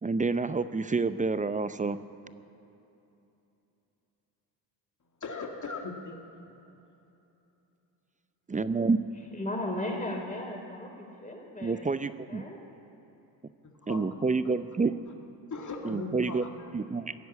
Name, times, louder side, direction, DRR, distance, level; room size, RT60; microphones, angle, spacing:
voice 1, 0.0-2.0 8.5-9.1 11.6-12.4 13.9-14.9 15.8-16.4 16.7-17.1, right 4 dB, 15° right, 13 dB, 0.6 m, -28 dB
voice 2, 5.2-6.6 13.8-14.0 15.5-16.7, left 3 dB, 35° left, 2 dB, 2.2 m, -39 dB
voice 3, 9.3-11.9 12.3-12.6, left 1 dB, 15° left, 1 dB, 4.7 m, -36 dB
16.5 x 10.0 x 8.5 m, 2.9 s
hypercardioid pair, 65°, 49 cm